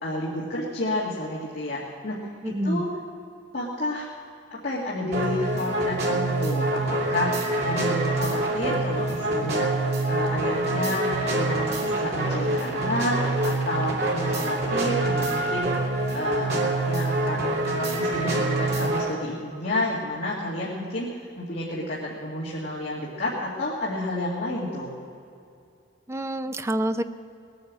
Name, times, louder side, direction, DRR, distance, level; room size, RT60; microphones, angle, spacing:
voice 1, 0.0-2.9 3.5-4.1 4.5-9.7 10.1-15.7 16.1-21.1 21.4-24.9, left 1 dB, 55° left, -5 dB, 2.3 m, -30 dB
voice 2, 2.4-2.8 26.1-27.0, right 1 dB, 15° right, 9 dB, 0.6 m, -27 dB
sound 1, 5.1-19.1, right 2 dB, 60° right, 2.5 m, -26 dB
20.0 x 9.3 x 7.6 m, 2.5 s
head